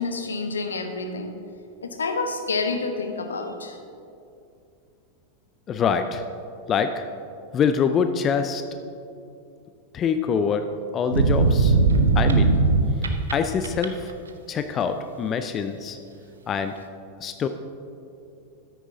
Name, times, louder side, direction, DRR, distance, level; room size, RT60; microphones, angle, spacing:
voice 1, 0.0-1.3 1.8-3.8, left 3 dB, 70° left, 7 dB, 0.8 m, -28 dB
voice 2, 5.7-6.2 6.7-7.0 7.5-8.6 9.9-10.7 10.9-11.8 12.2-12.6 13.3-14.1 14.5-16.0 16.5-16.7 17.2-17.5, left 6 dB, 25° left, 8 dB, 0.4 m, -24 dB
sound 1, 11.1-13.3 13.6-14.1, right 4 dB, 70° right, 0.7 m, -18 dB
14.0 x 9.8 x 2.7 m, 2.6 s
figure-of-eight pair, 90°, 0 cm